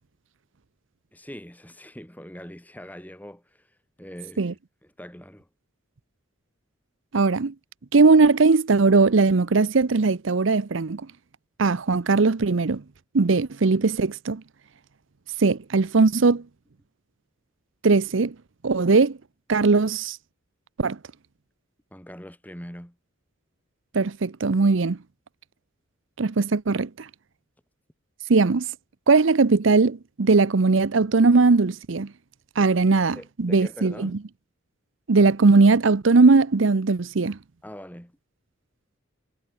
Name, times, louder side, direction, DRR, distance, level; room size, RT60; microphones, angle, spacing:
voice 1, 1.1-3.7 4.0-5.5 21.9-22.9 33.1-34.2 37.6-38.2, equal, 10° left, 5.1 m, -42 dB
voice 2, 7.1-7.5 7.9-11.0 11.6-12.8 13.1-14.4 15.4-16.4 17.8-18.3 18.6-19.2 19.5-20.2 20.8-21.0 23.9-25.0 26.2-27.1 28.3-28.7 29.1-32.1 32.6-34.1 35.1-37.4, right 4 dB, 65° right, 0.7 m, -19 dB
head